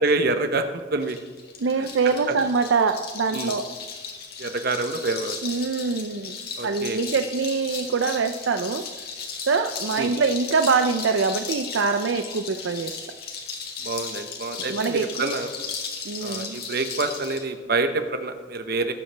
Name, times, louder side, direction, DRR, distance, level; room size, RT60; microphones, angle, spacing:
voice 1, 0.0-1.2 1.8-2.4 3.3-3.6 4.4-5.3 6.6-7.0 10.0-10.2 13.8-15.5 16.2-18.9, right 3 dB, 50° right, 7 dB, 1.0 m, -27 dB
sound 1, 1.0-17.4, left 5 dB, 50° left, 1.8 m, -36 dB
voice 2, 1.6-3.7 5.4-6.4 6.6-8.8 9.5-13.0 14.7-15.0 16.0-16.6, right 4 dB, 70° right, 7 dB, 0.5 m, -24 dB
19.0 x 7.9 x 3.4 m, 1.5 s
head